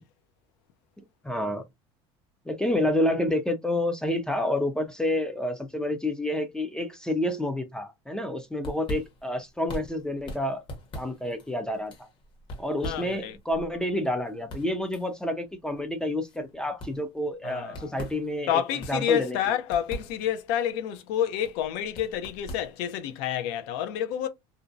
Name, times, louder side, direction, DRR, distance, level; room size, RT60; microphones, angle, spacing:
voice 1, 1.2-1.6 2.5-10.6 10.9-12.1 12.6-18.6 18.9-19.4, left 1 dB, 5° left, 0.3 m, -29 dB
sound 1, 8.3-23.2, equal, 35° left, 0.9 m, -43 dB
voice 2, 12.8-13.4 17.4-17.9 18.5-24.3, left 10 dB, 75° left, 0.5 m, -28 dB
2.5 x 2.0 x 2.5 m
supercardioid pair, 120°, 13 cm